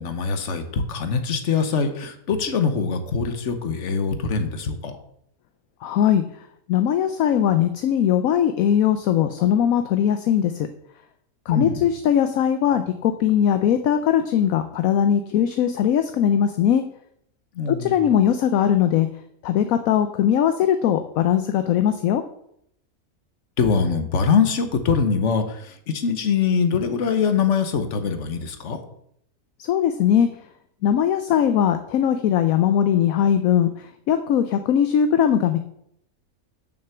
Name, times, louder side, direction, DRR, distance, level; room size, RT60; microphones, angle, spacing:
voice 1, 0.0-4.9 11.5-11.9 17.5-18.0 23.6-28.8, left 5 dB, 55° left, 8 dB, 1.3 m, -23 dB
voice 2, 5.8-6.2 6.7-10.7 11.5-16.8 17.7-19.1 19.4-22.2 29.6-30.3 30.8-35.6, left 9 dB, 70° left, 9 dB, 1.0 m, -20 dB
6.7 x 6.3 x 6.9 m, 0.72 s
omnidirectional pair, 1.6 m